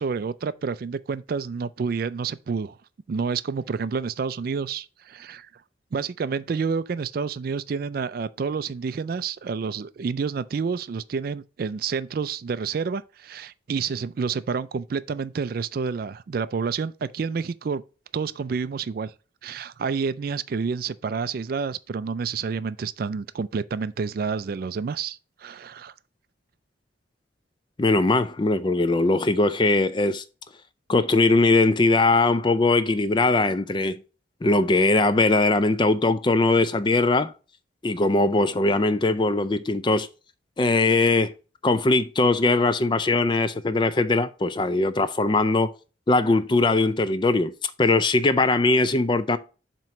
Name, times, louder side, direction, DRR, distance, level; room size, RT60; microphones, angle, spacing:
voice 1, 0.0-2.8 3.1-5.5 5.9-17.8 18.1-19.1 19.4-25.9, right 5 dB, 50° right, 0.3 m, -29 dB
voice 2, 27.8-30.2 30.9-34.0 34.4-37.3 37.8-40.1 40.6-41.3 41.6-45.7 46.1-49.4, left 2 dB, 25° left, 0.4 m, -21 dB
7.4 x 3.0 x 5.7 m
head